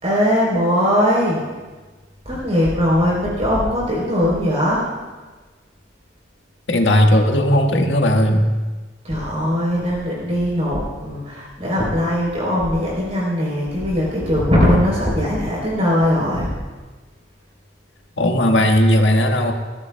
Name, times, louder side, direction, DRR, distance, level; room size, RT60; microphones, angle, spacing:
voice 1, 0.0-1.4 2.3-4.9 9.0-16.5, equal, 40° right, -5 dB, 3.7 m, -20 dB
voice 2, 6.7-8.5 18.2-19.5, equal, 80° left, 2 dB, 1.5 m, -16 dB
22.0 x 14.5 x 2.3 m, 1.3 s
head